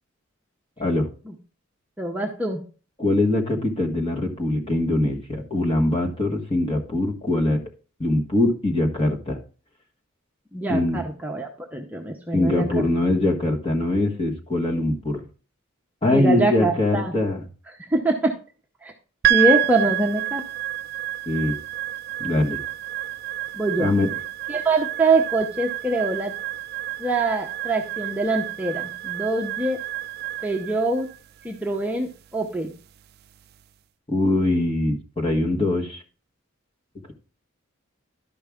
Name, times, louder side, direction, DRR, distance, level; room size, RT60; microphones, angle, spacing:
voice 1, 2.0-2.6 10.5-12.8 16.1-17.1 17.9-18.3 18.8-18.9 19.3-20.4 23.5-23.9 24.5-26.3 27.0-29.8 30.4-31.1 31.4-32.7, right 2 dB, 10° right, 0 dB, 0.8 m, -24 dB
voice 2, 3.0-7.6 8.0-9.4 10.7-11.0 12.3-15.3 16.0-17.4 21.3-21.6 22.2-22.6 23.8-24.1 34.1-36.0, left 2 dB, 25° left, 1 dB, 1.5 m, -22 dB
sound 1, 19.2-33.6, right 15 dB, 50° right, 0.4 m, -29 dB
12.0 x 5.5 x 3.6 m, 0.37 s
head